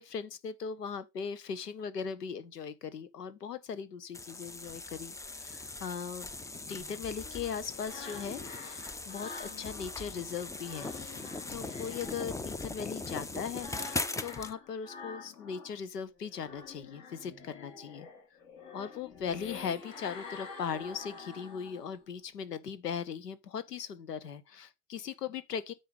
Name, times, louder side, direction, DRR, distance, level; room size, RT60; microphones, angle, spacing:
voice 1, 0.0-6.3 6.7-10.9 11.5-18.1 18.7-25.7, left 7 dB, 85° left, 0.8 m, -39 dB
sound 1, 4.1-14.5, left 3 dB, 5° left, 0.4 m, -40 dB
sound 2, 6.6-10.0 10.4-15.8 16.2-22.0, left 4 dB, 60° left, 3.8 m, -48 dB
9.2 x 3.9 x 5.2 m
figure-of-eight pair, 65°, 46 cm